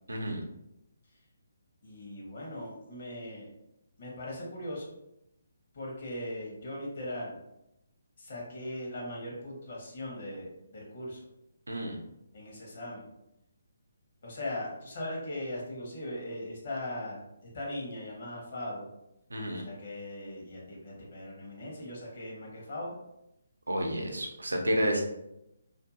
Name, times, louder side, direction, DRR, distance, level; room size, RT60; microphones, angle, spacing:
voice 1, 0.1-0.4 11.7-12.0 19.3-19.6 23.7-25.0, equal, 75° right, 2 dB, 0.5 m, -30 dB
voice 2, 1.8-3.5 4.0-4.9 5.7-7.4 8.2-11.2 12.3-13.0 14.2-17.2 17.5-18.9 19.5-23.0, left 1 dB, 50° left, -4 dB, 1.0 m, -39 dB
2.6 x 2.6 x 2.4 m, 0.85 s
figure-of-eight pair, 140°, 0 cm